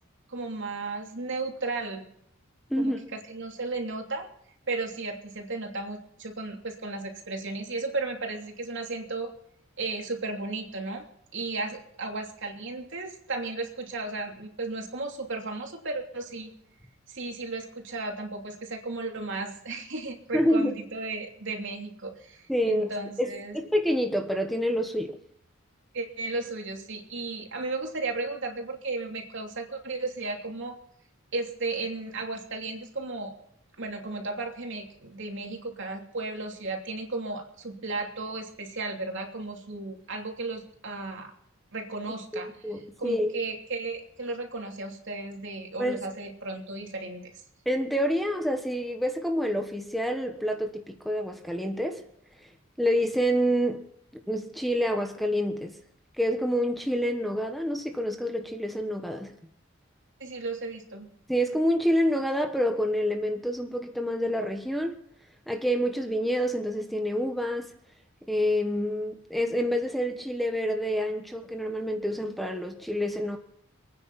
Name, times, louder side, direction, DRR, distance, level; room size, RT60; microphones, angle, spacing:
voice 1, 0.3-2.1 2.8-4.3 4.7-9.3 9.8-11.1 11.3-16.5 17.1-23.6 25.9-30.8 31.3-33.3 33.8-41.3 41.7-42.5 43.0-47.3 60.2-61.1, right 3 dB, 65° right, 3.0 m, -34 dB
voice 2, 2.7-3.0 20.3-20.7 22.5-22.9 23.2-25.2 42.3-43.3 45.8-46.0 47.6-52.0 52.8-53.8 54.3-55.8 56.2-59.4 61.3-65.0 65.5-67.7 68.3-73.4, equal, ahead, 1.2 m, -27 dB
28.0 x 9.7 x 4.2 m
head